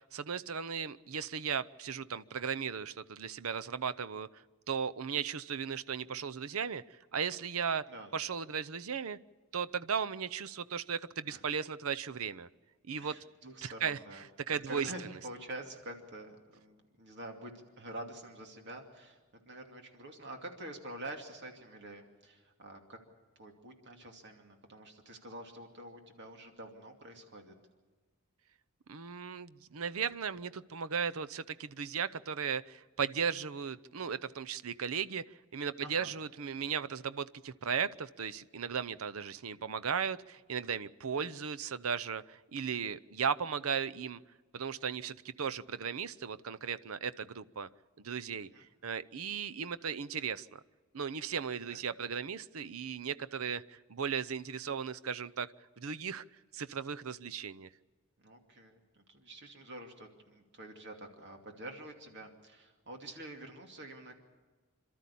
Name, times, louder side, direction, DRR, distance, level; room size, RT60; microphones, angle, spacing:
voice 1, 0.0-7.8 8.1-9.2 9.5-12.5 12.9-13.2 13.6-14.9 28.9-44.2 44.5-47.7 48.0-50.6 50.9-55.5 55.8-56.2 56.5-57.7, right 6 dB, 70° right, 14 dB, 0.7 m, -36 dB
voice 2, 13.0-14.2 14.5-19.2 19.5-23.0 23.4-27.5 35.8-36.1 48.5-48.7 51.7-51.8 58.2-64.2, right 1 dB, 50° right, 3 dB, 2.6 m, -47 dB
27.5 x 13.0 x 8.5 m, 1.4 s
head